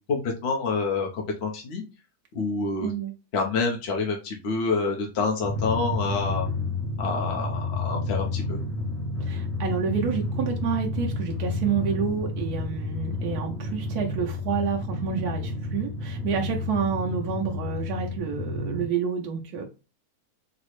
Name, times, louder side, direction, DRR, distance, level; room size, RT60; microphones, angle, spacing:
voice 1, 0.1-1.8 2.3-2.9 3.3-6.5 7.0-8.6, left 4 dB, 55° left, 0.8 m, -27 dB
voice 2, 2.8-3.1 9.2-19.7, right 7 dB, 85° right, 1.1 m, -29 dB
Drum, 5.4-18.9, left 2 dB, 5° left, 0.3 m, -30 dB
4.0 x 2.0 x 3.0 m
omnidirectional pair, 1.6 m